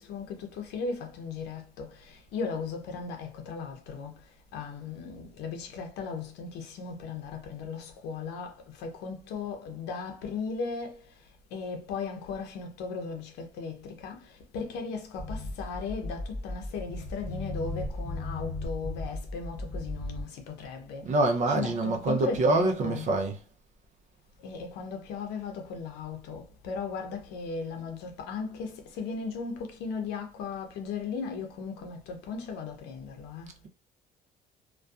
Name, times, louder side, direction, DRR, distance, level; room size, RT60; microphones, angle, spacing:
voice 1, 0.0-23.1 24.4-33.5, left 5 dB, 85° left, 0.6 m, -37 dB
sound 1, 15.2-20.2, left 2 dB, 20° left, 0.8 m, -36 dB
voice 2, 21.1-23.4, right 2 dB, 45° right, 0.6 m, -25 dB
2.5 x 2.2 x 2.3 m
cardioid pair, 110°, 17 cm